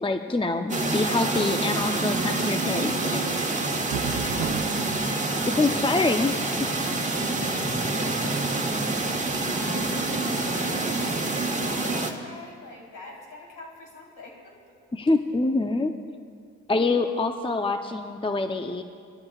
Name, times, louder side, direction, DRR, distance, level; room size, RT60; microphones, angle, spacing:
voice 1, 0.0-3.6 5.5-6.3 14.9-15.9 16.7-18.8, left 3 dB, 15° left, 7 dB, 0.8 m, -25 dB
sound 1, 0.7-12.1, right 2 dB, 20° right, 1.7 m, -27 dB
sound 2, 3.9-5.0, right 9 dB, 90° right, 0.6 m, -33 dB
voice 2, 5.1-6.6 7.5-14.8, left 2 dB, 70° left, -2 dB, 3.9 m, -45 dB
20.0 x 13.5 x 2.4 m, 2.1 s
hypercardioid pair, 45°, 34 cm